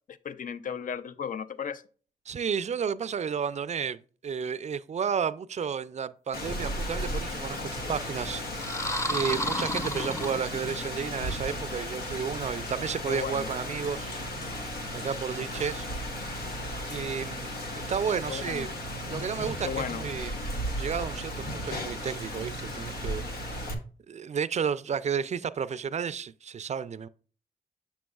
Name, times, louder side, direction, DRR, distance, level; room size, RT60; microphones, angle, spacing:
voice 1, 0.1-1.8 13.1-13.5 18.3-18.7 19.6-20.0, left 7 dB, 60° left, 0.5 m, -35 dB
voice 2, 2.3-4.0 4.2-8.7 9.1-14.1 14.9-15.9 16.9-17.5 17.9-18.7 19.1-20.3 20.8-23.2 24.1-27.1, right 7 dB, 45° right, 0.4 m, -32 dB
Rain, 6.3-23.7, equal, 90° left, 0.9 m, -35 dB
sound 1, 8.6-10.9, left 1 dB, 20° left, 0.7 m, -32 dB
7.1 x 6.1 x 2.3 m
cardioid pair, 50°, 16 cm